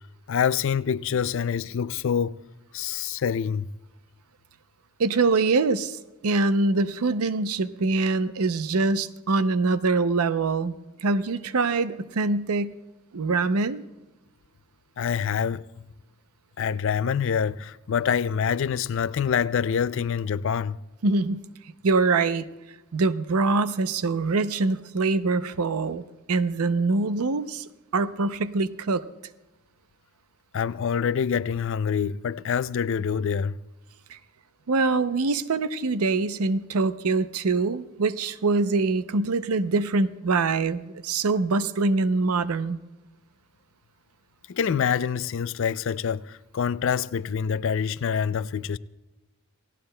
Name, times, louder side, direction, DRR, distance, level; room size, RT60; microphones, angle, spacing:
voice 1, 0.3-2.4 2.7-3.7 15.0-15.6 16.6-20.8 30.5-33.6 44.5-48.8, left 7 dB, 60° left, 0.4 m, -26 dB
voice 2, 5.0-10.7 11.0-12.7 13.1-13.8 21.0-21.4 21.8-22.5 22.9-27.6 27.9-29.0 34.1-34.2 34.7-42.8, right 3 dB, 85° right, 0.6 m, -24 dB
28.5 x 17.5 x 2.2 m
head